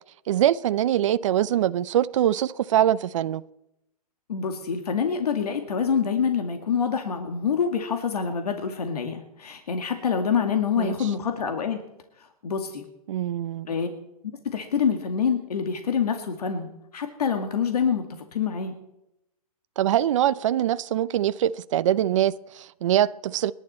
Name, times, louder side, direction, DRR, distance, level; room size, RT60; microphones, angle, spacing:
voice 1, 0.3-3.4 10.8-11.1 13.1-13.7 19.8-23.5, right 11 dB, 55° right, 0.6 m, -23 dB
voice 2, 4.3-11.8 12.4-12.8 13.7-13.9 14.5-16.7 16.9-18.1 18.3-18.7, left 6 dB, 80° left, 2.2 m, -26 dB
29.0 x 11.0 x 4.3 m
hypercardioid pair, 155°, 20 cm